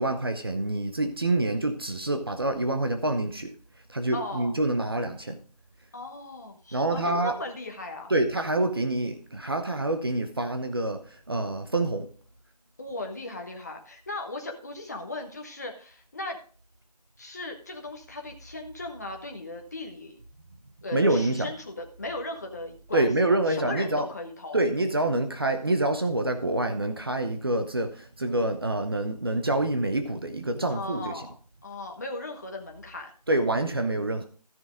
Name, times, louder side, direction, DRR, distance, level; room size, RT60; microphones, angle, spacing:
voice 1, 0.0-3.5 3.9-5.4 6.7-7.3 8.1-12.1 20.9-21.5 22.9-24.1 24.5-31.3 33.3-34.3, right 2 dB, 35° right, 7 dB, 0.8 m, -26 dB
voice 2, 4.1-4.5 5.9-8.1 12.8-16.4 17.2-20.2 20.8-24.6 30.7-31.3 31.6-33.1, left 2 dB, 25° left, 3 dB, 1.1 m, -37 dB
13.5 x 6.8 x 3.7 m, 0.40 s
figure-of-eight pair, 170°, 21 cm